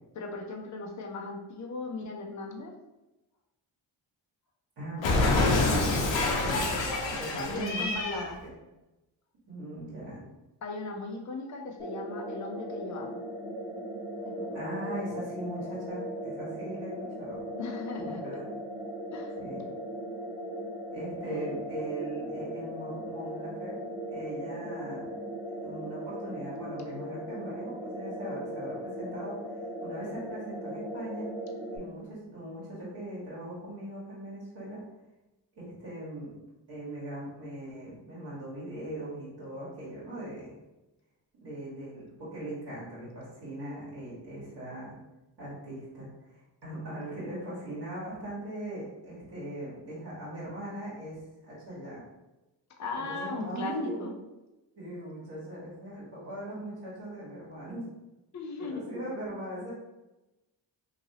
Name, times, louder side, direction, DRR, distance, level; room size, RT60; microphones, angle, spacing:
voice 1, 0.1-2.7 7.4-8.4 10.6-13.2 14.3-14.6 17.6-18.2 19.1-19.4 21.2-21.5 52.8-54.1 58.3-58.8, left 3 dB, 40° left, 2 dB, 0.6 m, -38 dB
voice 2, 4.8-6.8 7.1-8.5 9.5-10.3 14.5-16.9 17.2-17.4 18.0-18.4 19.4-19.6 20.9-23.8 24.1-25.1 25.6-29.4 29.8-31.3 31.7-34.8 35.5-36.3 36.7-40.6 41.4-44.9 45.4-46.3 46.6-51.2 51.4-52.0 52.9-54.1 54.8-57.8 58.6-59.7, right 1 dB, 60° right, -10 dB, 1.5 m, -39 dB
Cat, 5.0-8.3, left 2 dB, 75° left, 0.7 m, -27 dB
sound 1, 11.8-31.8, equal, 10° right, 1.0 m, -38 dB
2.9 x 2.7 x 2.8 m, 1.0 s
cardioid pair, 70°, 45 cm